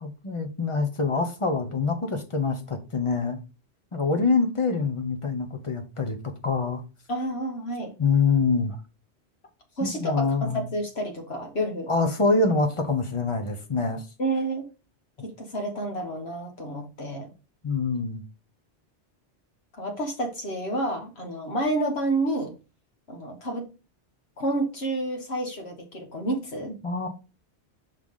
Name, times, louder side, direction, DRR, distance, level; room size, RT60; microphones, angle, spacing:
voice 1, 0.0-3.4 3.9-6.2 6.4-6.8 8.0-8.8 9.8-10.7 11.9-14.1 17.6-18.2 26.8-27.1, left 4 dB, 30° left, 0.9 m, -25 dB
voice 2, 7.1-7.9 9.8-11.9 14.2-14.6 15.2-17.3 19.8-22.5 23.1-23.7 24.4-26.7, right 1 dB, 65° left, 1.8 m, -29 dB
5.8 x 4.8 x 3.7 m
omnidirectional pair, 1.1 m